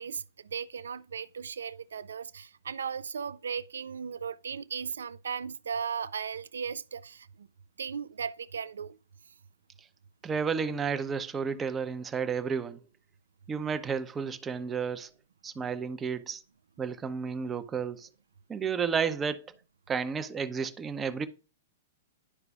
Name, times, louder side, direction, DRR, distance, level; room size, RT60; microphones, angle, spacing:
voice 1, 0.0-7.5 7.8-9.0, right 6 dB, 80° right, 0.3 m, -37 dB
voice 2, 10.2-12.8 13.5-15.1 15.4-16.4 16.8-18.1 18.5-19.5 19.9-21.3, right 6 dB, 20° right, 0.6 m, -32 dB
11.0 x 4.8 x 2.3 m
hypercardioid pair, 110°, 0 cm